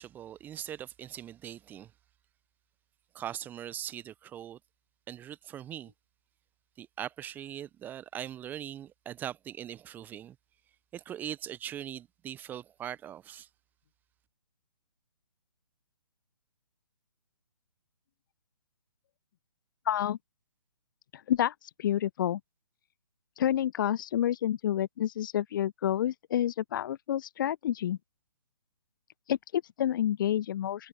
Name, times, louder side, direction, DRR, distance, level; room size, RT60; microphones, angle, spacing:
voice 1, 0.0-1.9 3.1-4.6 5.1-5.9 6.8-10.4 10.9-13.5, right 10 dB, 10° right, 0.6 m, -41 dB
voice 2, 19.9-20.2 21.3-21.5 21.8-22.4 23.4-28.0 29.3-30.9, left 11 dB, 35° left, 0.7 m, -29 dB
figure-of-eight pair, 135°, 18 cm